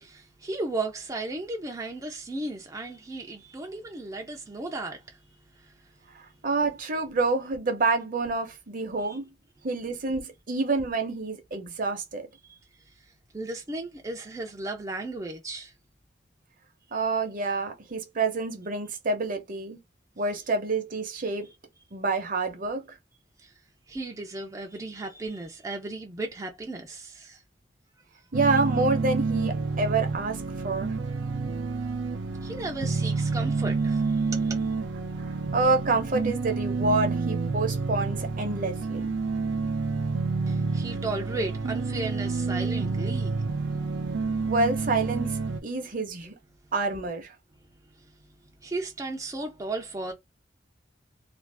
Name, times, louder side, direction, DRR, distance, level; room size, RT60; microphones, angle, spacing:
voice 1, 0.0-5.2 5.5-5.7 9.0-9.2 12.4-12.6 13.3-15.7 23.4-23.5 23.9-27.4 32.4-34.7 40.5-43.5 48.0-48.2 48.6-50.1, right 2 dB, 20° right, 0.4 m, -35 dB
voice 2, 6.1-9.3 9.6-12.3 16.9-19.8 20.2-21.5 21.9-22.9 28.3-30.9 35.5-39.1 44.5-46.3 46.7-47.3, right 3 dB, 50° right, 0.7 m, -28 dB
sound 1, 28.3-45.6, right 4 dB, 90° right, 0.5 m, -29 dB
2.5 x 2.4 x 3.2 m
head